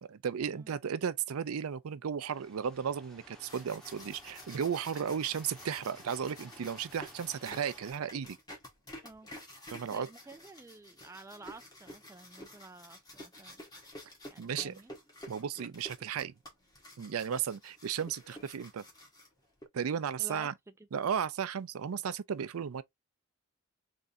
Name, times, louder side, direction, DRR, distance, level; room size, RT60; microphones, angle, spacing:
voice 1, 0.1-8.4 9.7-10.1 14.4-14.7 15.3-16.3 17.0-18.8 19.7-20.5 20.9-22.8, right 7 dB, 80° right, 0.4 m, -34 dB
sound 1, 2.2-7.9, equal, 5° left, 1.0 m, -56 dB
sound 2, 3.4-19.6, left 1 dB, 20° left, 1.4 m, -51 dB
voice 2, 9.9-13.6 14.3-14.9 20.2-20.9, right 2 dB, 15° right, 0.3 m, -51 dB
3.7 x 3.3 x 2.6 m
head